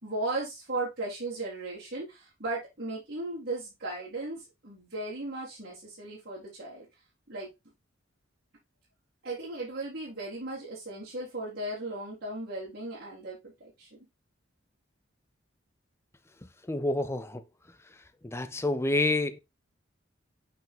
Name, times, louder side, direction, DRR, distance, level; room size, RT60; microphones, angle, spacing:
voice 1, 0.0-6.9 7.3-7.5 9.2-14.1, right 2 dB, 50° right, 4.1 m, -36 dB
voice 2, 16.4-17.4 18.2-19.4, left 2 dB, 15° left, 0.5 m, -29 dB
9.1 x 5.8 x 2.2 m
head